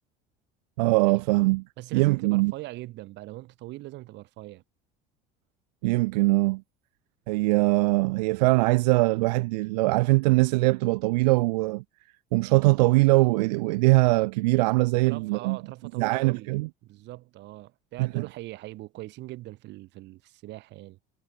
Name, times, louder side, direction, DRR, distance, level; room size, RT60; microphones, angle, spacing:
voice 1, 0.8-1.6 1.9-2.5 5.8-6.6 7.3-11.8 12.3-15.6 16.0-16.7 18.0-18.2, right 23 dB, 85° right, 0.6 m, -22 dB
voice 2, 1.8-4.6 15.0-16.6 16.8-21.0, right 18 dB, 60° right, 1.8 m, -41 dB
supercardioid pair, 85°, 20 cm